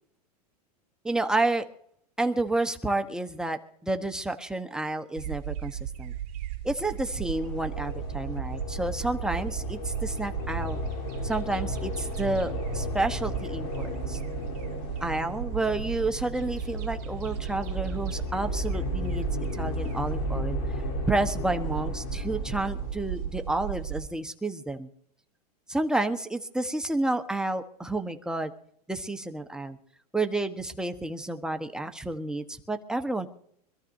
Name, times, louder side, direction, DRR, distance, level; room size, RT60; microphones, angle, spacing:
voice 1, 1.0-1.7 2.2-6.1 6.6-10.8 11.2-14.2 15.0-19.3 19.6-20.6 21.1-24.9 25.7-28.5 28.9-29.8 30.1-33.3, right 2 dB, 5° right, 7 dB, 1.1 m, -30 dB
sound 1, 5.2-24.1, right 11 dB, 60° right, 2.5 m, -35 dB
sound 2, 6.8-23.8, left 3 dB, 70° left, 3.5 m, -35 dB
25.5 x 14.0 x 2.7 m, 0.67 s
hypercardioid pair, 125°, 21 cm